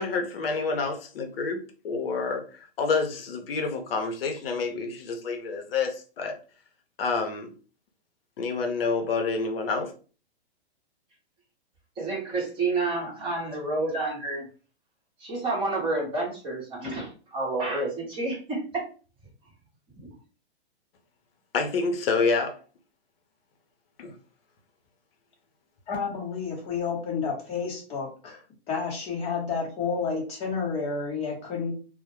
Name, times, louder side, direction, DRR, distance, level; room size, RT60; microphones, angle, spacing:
voice 1, 0.0-6.3 7.0-7.5 8.4-9.9 21.5-22.6 24.0-24.1, left 4 dB, 65° left, 0.7 m, -28 dB
voice 2, 12.0-14.5 15.2-18.8 20.0-20.1, right 2 dB, 15° right, 0.9 m, -29 dB
voice 3, 25.9-28.4 28.7-31.7, left 5 dB, 20° left, 0.8 m, -30 dB
2.1 x 2.0 x 3.0 m
hypercardioid pair, 140°, 32 cm